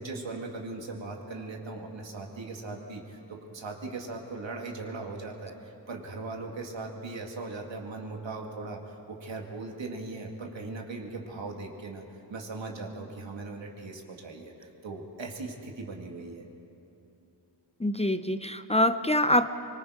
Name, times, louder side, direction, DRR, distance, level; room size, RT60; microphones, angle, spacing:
voice 1, 0.0-12.0 12.3-16.5, right 3 dB, 85° right, 1 dB, 2.2 m, -39 dB
voice 2, 17.8-19.5, left 1 dB, 15° left, 10 dB, 0.5 m, -25 dB
24.0 x 22.0 x 5.0 m, 2.9 s
wide cardioid pair, 70°, 44 cm